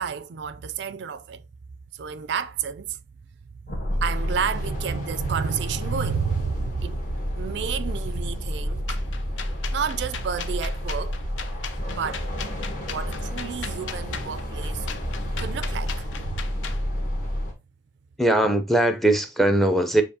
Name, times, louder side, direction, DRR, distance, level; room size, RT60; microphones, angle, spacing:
voice 1, 0.0-1.4 1.9-3.0 3.9-7.0 7.4-9.0 9.7-11.2 11.9-12.3 12.8-14.9 15.2-16.4, right 6 dB, 55° right, 0.3 m, -30 dB
sound 1, 3.7-17.5, equal, 40° left, 1.4 m, -30 dB
sound 2, 8.9-16.8, left 7 dB, 65° left, 0.5 m, -37 dB
voice 2, 18.2-20.0, right 1 dB, ahead, 0.5 m, -20 dB
6.8 x 2.7 x 2.7 m
head